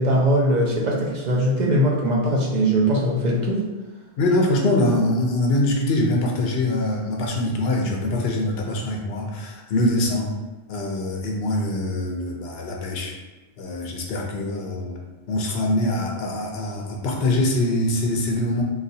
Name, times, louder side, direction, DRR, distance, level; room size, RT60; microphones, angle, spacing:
voice 1, 0.0-3.6, right 1 dB, 50° right, -2 dB, 0.6 m, -20 dB
voice 2, 4.2-10.3 10.7-13.1 13.6-15.0 15.3-18.6, left 1 dB, 70° left, 0 dB, 0.8 m, -23 dB
4.0 x 2.3 x 2.7 m, 1.2 s
omnidirectional pair, 1.1 m